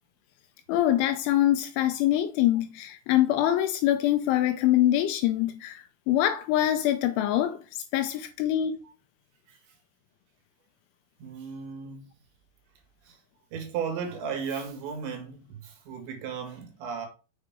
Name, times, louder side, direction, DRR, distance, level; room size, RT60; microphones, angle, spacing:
voice 1, 0.7-7.6 7.9-8.8, left 12 dB, 85° left, 2.8 m, -24 dB
voice 2, 11.2-12.1 13.1-13.2 13.5-17.1, right 6 dB, 65° right, 3.8 m, -35 dB
7.2 x 6.5 x 3.6 m
omnidirectional pair, 5.8 m